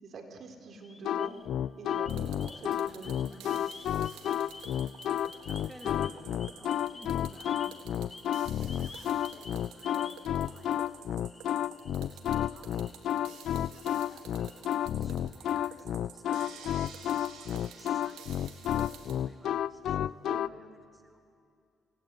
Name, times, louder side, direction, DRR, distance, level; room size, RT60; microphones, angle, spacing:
voice 1, 0.0-1.4 1.8-3.6 9.9-10.0 15.0-15.1 20.3-20.4, right 4 dB, 55° right, 5 dB, 4.0 m, -46 dB
sound 1, 0.7-1.5 1.9-10.9 11.2-14.9, left 3 dB, 25° left, 1.7 m, -51 dB
sound 2, 1.0-20.5, left 11 dB, 75° left, 0.5 m, -31 dB
sound 3, 2.1-19.2, right 8 dB, 85° right, 3.5 m, -51 dB
voice 2, 5.2-12.9 14.1-18.5 19.1-20.0 20.4-21.2, right 1 dB, 10° right, 6 dB, 2.1 m, -57 dB
27.0 x 20.0 x 9.6 m, 2.5 s
cardioid pair, 90°, 0 cm